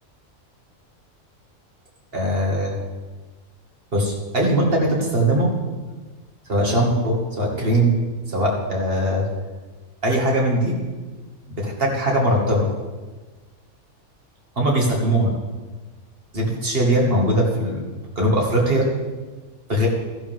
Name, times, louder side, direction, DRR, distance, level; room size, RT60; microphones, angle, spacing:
voice 1, 2.1-2.8 3.9-5.5 6.5-8.0 8.3-9.3 10.0-10.8 11.5-12.7 14.6-15.4 16.3-17.9 18.2-18.9 19.7-19.9, right 1 dB, 40° right, -1 dB, 2.3 m, -20 dB
14.0 x 11.0 x 3.6 m, 1.3 s
omnidirectional pair, 1.5 m